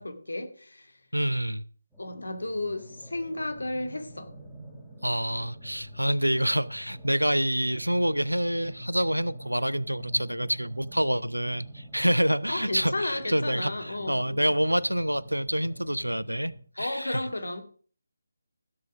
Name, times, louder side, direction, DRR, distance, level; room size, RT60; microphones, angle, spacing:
voice 1, 0.0-0.9 2.0-4.3 12.5-14.5 16.8-17.6, left 2 dB, 70° left, 2.4 m, -33 dB
voice 2, 1.1-1.6 5.0-17.3, equal, 90° right, 0.7 m, -27 dB
sound 1, 1.9-16.6, right 1 dB, ahead, 3.9 m, -45 dB
16.5 x 6.6 x 5.0 m
figure-of-eight pair, 155°, 0 cm